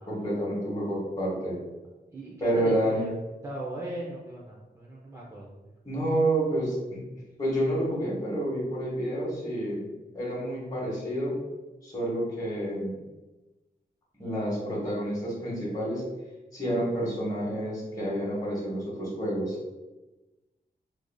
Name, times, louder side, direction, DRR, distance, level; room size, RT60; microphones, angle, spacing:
voice 1, 0.1-1.6 2.4-3.0 5.8-7.0 7.4-9.8 10.1-11.3 11.8-12.9 14.2-16.0 16.5-19.5, right 1 dB, 20° left, -6 dB, 1.1 m, -29 dB
voice 2, 2.1-3.1 3.4-5.7, right 1 dB, 20° right, -6 dB, 0.5 m, -38 dB
4.5 x 2.5 x 2.2 m, 1.1 s
wide cardioid pair, 125°, 17 cm